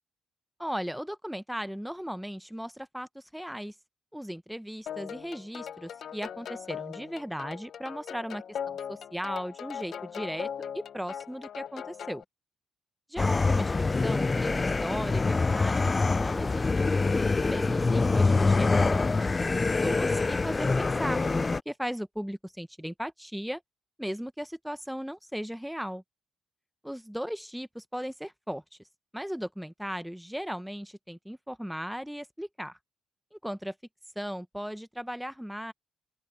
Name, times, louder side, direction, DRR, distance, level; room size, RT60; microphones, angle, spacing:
voice 1, 0.6-3.7 4.1-10.5 10.7-12.2 13.1-13.7 14.0-16.6 17.5-21.2 21.5-23.6 24.0-26.0 26.8-28.6 29.1-32.8 33.3-33.7 34.2-35.7, equal, ahead, 0.9 m, -37 dB
sound 1, 4.9-12.2, left 8 dB, 60° left, 0.8 m, -39 dB
sound 2, 13.2-21.6, left 3 dB, 25° left, 0.4 m, -25 dB
open air
cardioid pair, 90°, 0 cm